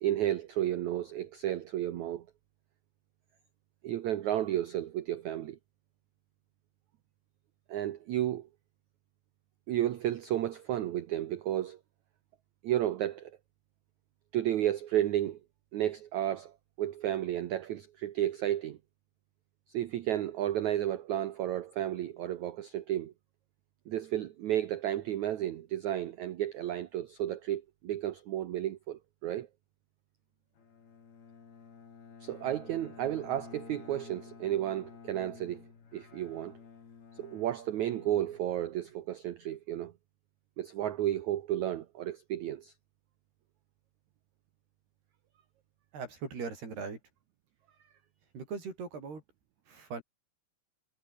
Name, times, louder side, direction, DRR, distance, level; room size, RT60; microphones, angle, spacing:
voice 1, 0.0-2.3 3.8-5.6 7.7-8.5 9.7-11.8 12.6-13.3 14.3-15.4 15.7-16.5 16.8-18.8 19.7-23.1 23.9-29.5 32.2-35.6 35.9-36.6 37.2-39.9 40.6-42.7, right 12 dB, 65° right, 2.0 m, -32 dB
Bowed string instrument, 30.6-39.0, left 6 dB, 75° left, 6.7 m, -52 dB
voice 2, 45.9-47.0 48.3-49.2 49.7-50.0, right 5 dB, 90° right, 8.6 m, -39 dB
omnidirectional pair, 4.5 m